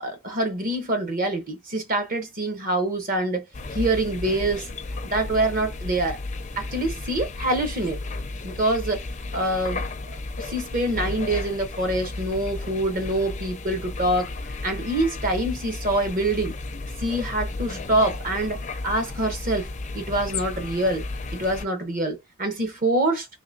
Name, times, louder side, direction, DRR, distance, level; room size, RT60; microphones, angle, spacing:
voice 1, 0.0-3.4 3.7-4.7 5.0-6.2 6.6-8.0 8.4-9.0 9.3-9.9 10.4-14.3 14.6-16.5 17.0-19.7 19.9-21.0 21.3-23.3, right 1 dB, 40° right, 0.9 m, -25 dB
sound 1, 3.5-21.7, left 2 dB, 35° left, 0.5 m, -33 dB
3.7 x 3.1 x 2.6 m
head